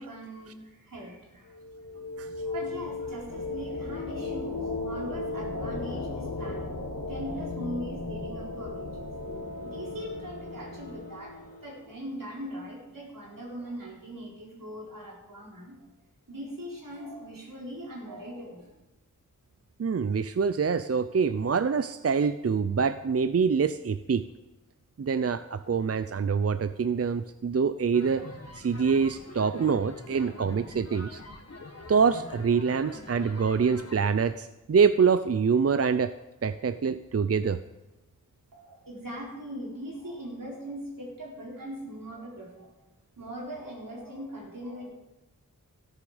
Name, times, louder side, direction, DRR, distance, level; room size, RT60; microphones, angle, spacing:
voice 1, 0.0-9.1 9.6-15.8 16.3-18.7 38.5-42.7 43.2-44.9, equal, 85° right, -3 dB, 4.3 m, -40 dB
sound 1, 1.5-12.1, left 3 dB, 90° left, 2.1 m, -36 dB
voice 2, 19.8-24.2 25.0-28.3 28.6-31.2 31.9-36.1 36.4-37.6, right 6 dB, 45° right, 12 dB, 0.5 m, -25 dB
sound 2, 27.9-34.0, left 2 dB, 50° left, 1.9 m, -44 dB
13.5 x 11.5 x 5.0 m, 1.0 s
wide cardioid pair, 50°, 33 cm